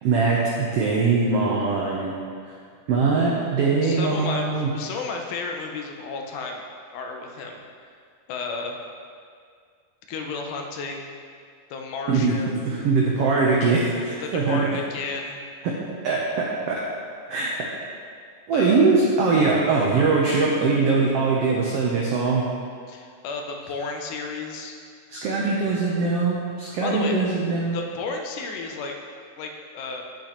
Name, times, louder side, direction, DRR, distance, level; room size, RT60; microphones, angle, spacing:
voice 1, 0.0-2.1 2.9-4.7 12.1-12.4 12.6-14.7 15.6-15.7 16.0-16.8 17.3-17.6 18.5-22.4 25.1-27.8, right 4 dB, 90° right, -3 dB, 1.3 m, -22 dB
voice 2, 3.8-6.6 6.9-7.6 8.3-8.7 10.1-11.1 11.7-12.7 14.2-15.4 18.5-18.8 22.9-24.8 26.8-27.1 27.7-29.0 29.4-30.0, left 4 dB, 75° left, 2 dB, 2.1 m, -32 dB
8.6 x 8.1 x 3.0 m, 2.1 s
omnidirectional pair, 3.8 m